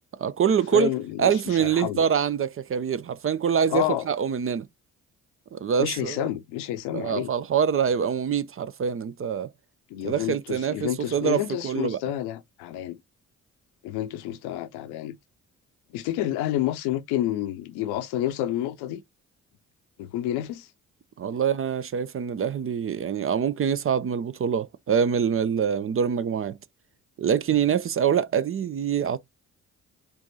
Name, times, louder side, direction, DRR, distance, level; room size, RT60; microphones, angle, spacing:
voice 1, 0.2-0.9 1.2-4.7 5.5-6.3 6.9-9.5 10.0-12.0 21.2-26.6 27.2-29.2, right 7 dB, 35° right, 0.5 m, -25 dB
voice 2, 0.7-2.0 3.7-4.1 5.8-7.3 9.9-13.0 13.8-15.2 15.9-19.0 20.0-20.7, left 13 dB, 70° left, 0.7 m, -29 dB
4.6 x 2.5 x 4.0 m
hypercardioid pair, 40°, 40 cm